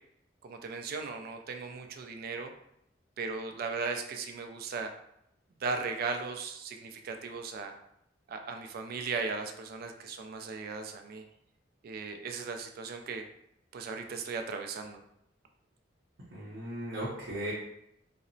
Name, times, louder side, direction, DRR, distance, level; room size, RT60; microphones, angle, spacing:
voice 1, 0.4-2.5 3.2-4.9 5.6-7.7 8.3-11.2 11.8-13.2 13.7-15.0, right 4 dB, 50° right, 5 dB, 0.3 m, -37 dB
voice 2, 16.3-17.5, right 1 dB, 75° right, -7 dB, 0.7 m, -37 dB
2.8 x 2.0 x 2.6 m, 0.77 s
head